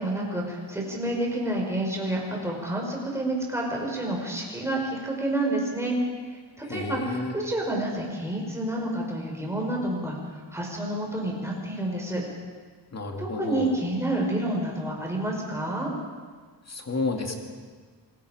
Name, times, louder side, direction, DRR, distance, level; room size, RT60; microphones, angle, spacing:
voice 1, 0.0-6.0 6.6-10.2 10.5-12.2 13.2-15.9, right 1 dB, 5° right, -2 dB, 4.9 m, -29 dB
voice 2, 6.6-7.3 12.9-13.7 16.7-17.3, left 3 dB, 35° left, 3 dB, 2.3 m, -31 dB
27.5 x 20.5 x 5.0 m, 1.5 s
wide cardioid pair, 170°, 43 cm